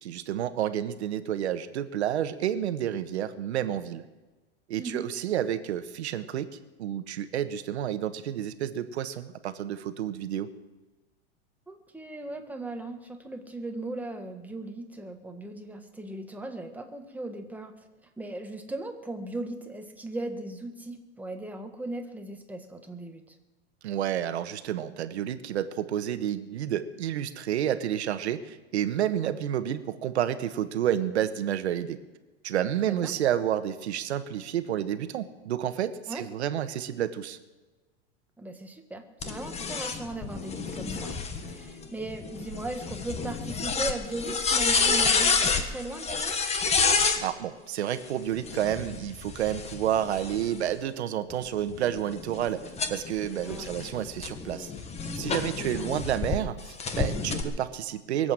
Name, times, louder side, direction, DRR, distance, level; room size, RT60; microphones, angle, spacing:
voice 1, 0.0-4.0 4.7-6.5 6.8-10.5 23.8-32.0 32.4-37.4 47.2-54.7 55.1-58.3, right 10 dB, 85° right, 11 dB, 1.4 m, -30 dB
voice 2, 11.7-17.7 18.2-23.4 32.9-33.1 36.1-36.2 38.4-41.2 41.5-46.3 53.4-53.7 55.6-55.9, right 2 dB, 5° right, 4 dB, 1.6 m, -38 dB
sound 1, 39.2-47.2 48.4-50.7 51.3-56.4 56.8-57.4, left 5 dB, 20° left, 1.6 m, -29 dB
22.5 x 8.2 x 7.6 m, 1.2 s
supercardioid pair, 130°, 32 cm